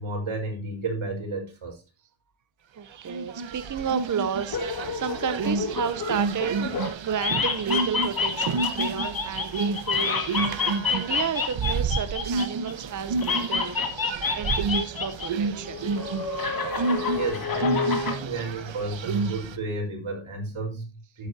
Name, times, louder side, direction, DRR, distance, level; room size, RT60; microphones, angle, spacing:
voice 1, 0.0-1.8 17.1-21.3, right 3 dB, 85° right, 4.6 m, -32 dB
voice 2, 2.8-13.8 14.3-15.8 16.2-16.3, right 7 dB, 40° right, 0.8 m, -32 dB
sound 1, 3.1-19.6, right 4 dB, 70° right, 1.1 m, -30 dB
sound 2, 4.5-6.9 7.2-12.7 13.2-15.3 15.6-18.2, left 5 dB, 45° left, 2.0 m, -28 dB
13.0 x 10.0 x 2.8 m
wide cardioid pair, 150°, 48 cm